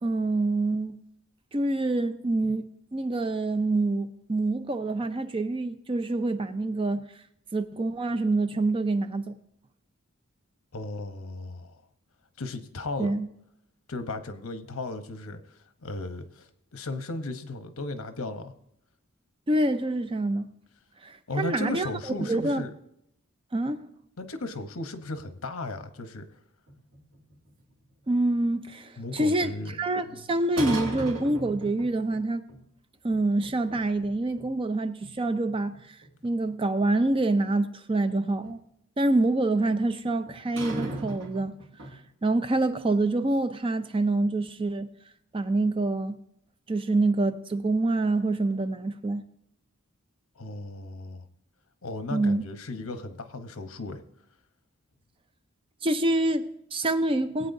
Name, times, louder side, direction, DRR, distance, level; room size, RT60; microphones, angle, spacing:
voice 1, 0.0-1.0 1.5-2.7 2.9-7.0 7.5-9.3 13.0-13.3 19.5-20.5 21.0-21.9 22.2-22.7 23.5-23.8 28.1-29.5 29.8-32.4 33.0-35.7 36.2-38.6 39.0-41.5 42.2-44.9 45.3-46.2 46.7-49.2 52.1-52.4 55.8-57.5, right 2 dB, 25° right, 0.5 m, -26 dB
voice 2, 10.7-11.8 12.4-13.2 13.9-18.5 21.3-22.7 24.2-26.3 29.0-29.7 30.1-30.2 50.4-51.2 51.8-54.0, left 2 dB, 80° left, 0.9 m, -36 dB
sound 1, 26.7-28.0 30.6-32.2 32.5-32.6 33.1-34.1 34.4-34.5 35.0-35.1 35.5-36.9 38.4-38.5 40.3-42.0, right 1 dB, 60° right, 2.3 m, -36 dB
19.0 x 8.5 x 2.7 m
head